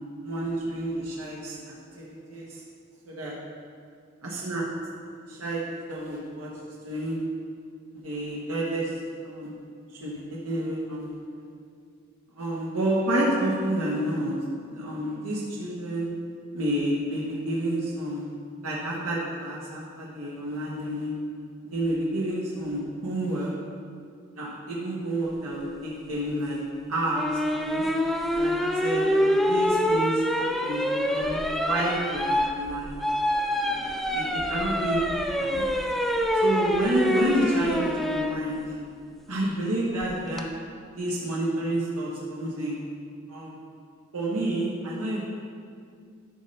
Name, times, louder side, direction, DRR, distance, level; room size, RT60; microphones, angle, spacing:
voice 1, 0.2-1.6 1.9-2.6 3.0-3.3 4.2-4.7 5.3-6.5 6.8-7.2 8.0-8.9 9.2-9.5 9.9-11.1 11.4-11.5 12.4-14.4 14.6-16.1 16.5-18.3 18.6-21.1 21.6-23.5 24.4-26.6 26.9-27.9 28.3-30.2 30.6-33.0 33.6-35.6 36.3-38.6 39.3-40.5 41.0-42.8 43.3-43.6 44.1-45.2, right 1 dB, 85° right, -5 dB, 1.2 m, -29 dB
sound 1, 27.1-38.3 40.0-40.4, equal, ahead, 0.4 m, -26 dB
12.5 x 5.5 x 3.3 m, 2.2 s
head